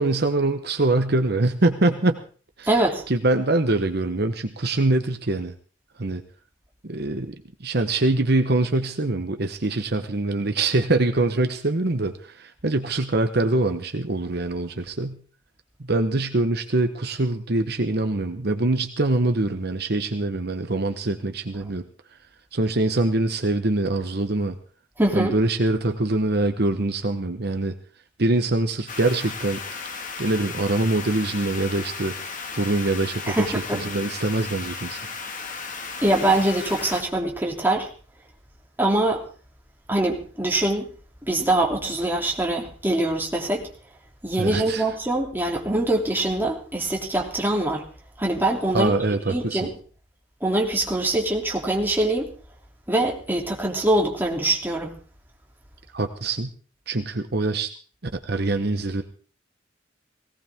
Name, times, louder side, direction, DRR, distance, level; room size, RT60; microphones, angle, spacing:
voice 1, 0.0-2.2 2.6-2.7 3.1-5.5 6.0-6.2 6.8-7.3 7.6-15.2 15.8-21.9 22.5-24.6 25.1-27.7 28.2-29.6 30.2-32.2 32.5-35.0 44.4-44.8 48.7-49.7 55.9-56.5 56.9-57.7 58.3-59.0, right 2 dB, 55° right, 6 dB, 1.1 m, -24 dB
voice 2, 2.7-3.0 25.0-25.3 33.3-33.8 36.0-37.9 38.8-39.2 39.9-40.9 41.2-43.7 44.2-47.8 48.2-48.9 49.3-49.7 50.4-52.3 52.9-54.9, right 1 dB, 10° right, -1 dB, 3.0 m, -23 dB
sound 1, 28.9-37.0, left 5 dB, 45° left, 1.9 m, -35 dB
18.5 x 17.5 x 3.6 m, 0.41 s
head